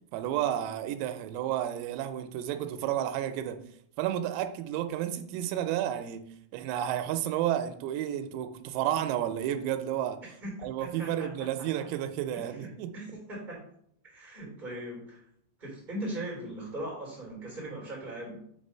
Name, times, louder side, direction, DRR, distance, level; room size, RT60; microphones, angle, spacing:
voice 1, 0.1-3.6 4.0-6.2 6.5-10.2 10.6-12.9, right 11 dB, 90° right, 8 dB, 3.4 m, -31 dB
voice 2, 10.2-10.5 10.8-11.9 12.3-13.6 14.0-15.2 15.6-18.4, right 1 dB, 15° right, -2 dB, 1.5 m, -40 dB
7.5 x 3.3 x 5.4 m, 0.68 s
omnidirectional pair, 5.9 m